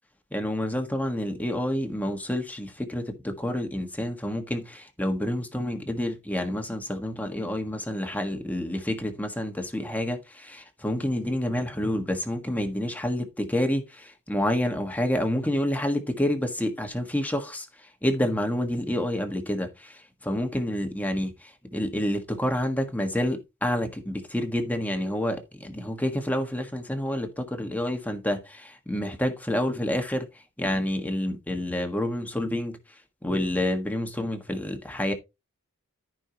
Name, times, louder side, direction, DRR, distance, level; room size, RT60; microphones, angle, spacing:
voice 1, 0.3-30.3 30.6-32.8 33.2-35.1, left 1 dB, 5° left, 1.5 m, -28 dB
13.5 x 5.6 x 2.9 m
head